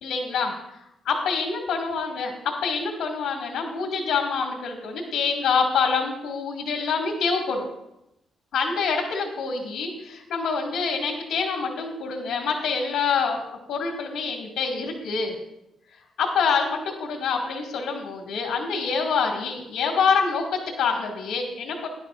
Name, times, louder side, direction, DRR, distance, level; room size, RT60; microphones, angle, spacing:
voice 1, 0.0-0.5 1.0-7.7 8.5-15.3 16.2-21.9, left 5 dB, 80° left, 0 dB, 2.1 m, -26 dB
18.0 x 11.0 x 2.5 m, 0.83 s
cardioid pair, 95°, 0 cm